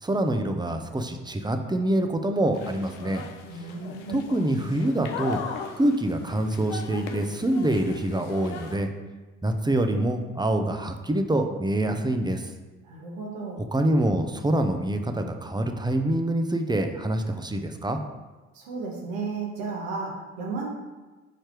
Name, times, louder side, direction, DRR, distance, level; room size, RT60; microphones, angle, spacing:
voice 1, 0.0-3.2 4.1-5.4 5.8-8.9 9.4-12.5 13.7-18.0, right 1 dB, 10° right, 5 dB, 0.7 m, -25 dB
sound 1, 2.5-8.8, left 6 dB, 85° left, 0.6 m, -38 dB
voice 2, 3.5-4.4 12.8-13.7 18.5-20.7, right 4 dB, 75° right, -2 dB, 1.4 m, -34 dB
5.0 x 4.4 x 4.6 m, 1.2 s
hypercardioid pair, 45°, 36 cm